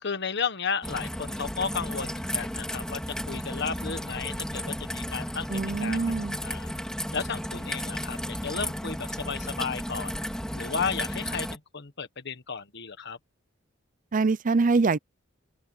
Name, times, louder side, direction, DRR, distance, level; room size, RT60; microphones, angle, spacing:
voice 1, 0.0-3.0 3.3-5.5 5.8-6.0 6.4-6.7 7.1-10.1 10.5-13.2, left 5 dB, 60° left, 1.5 m, -33 dB
Raindrop / Trickle dribble, 0.8-11.6, equal, 5° left, 4.5 m, -34 dB
voice 2, 5.5-6.4 14.1-15.0, right 4 dB, 40° right, 0.5 m, -24 dB
open air
head